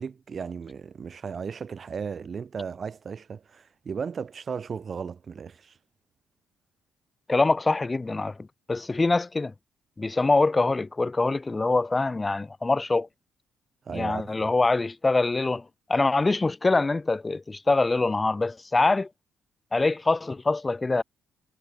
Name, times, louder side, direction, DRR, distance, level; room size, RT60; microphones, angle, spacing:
voice 1, 0.0-5.8 13.9-14.5, right 6 dB, 45° right, 0.6 m, -35 dB
voice 2, 7.3-8.4 8.7-9.5 10.0-13.1 13.9-19.1 19.7-21.0, left 3 dB, 20° left, 0.3 m, -24 dB
cardioid pair, 90°, 0 cm